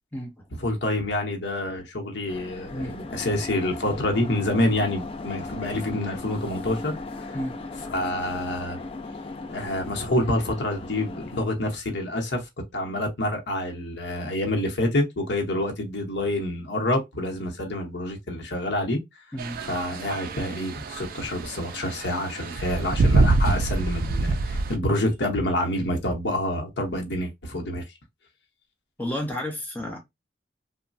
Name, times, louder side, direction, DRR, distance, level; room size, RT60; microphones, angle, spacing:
voice 1, 0.6-7.4 7.9-8.8 9.5-19.0 19.6-27.8, left 1 dB, 70° left, 0.8 m, -27 dB
sound 1, 2.3-11.4, left 3 dB, 30° left, 0.4 m, -37 dB
voice 2, 19.3-19.6 29.0-30.0, left 1 dB, 10° left, 0.8 m, -31 dB
sound 2, 19.4-24.7, right 3 dB, 50° right, 0.3 m, -25 dB
3.0 x 2.1 x 2.5 m
head